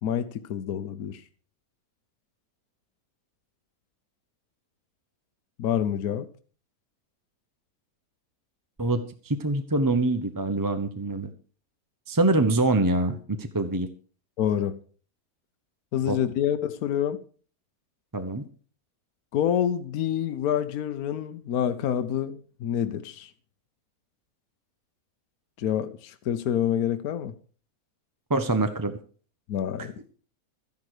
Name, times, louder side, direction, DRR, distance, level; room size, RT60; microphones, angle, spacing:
voice 1, 0.0-1.2 5.6-6.3 14.4-14.8 15.9-17.2 19.3-23.3 25.6-27.3 29.5-29.9, left 9 dB, 75° left, 1.2 m, -27 dB
voice 2, 8.8-11.3 12.1-13.9 16.1-16.2 18.1-18.4 28.3-28.9 29.8-29.9, right 2 dB, 20° right, 0.6 m, -25 dB
13.5 x 10.5 x 4.9 m
omnidirectional pair, 1.6 m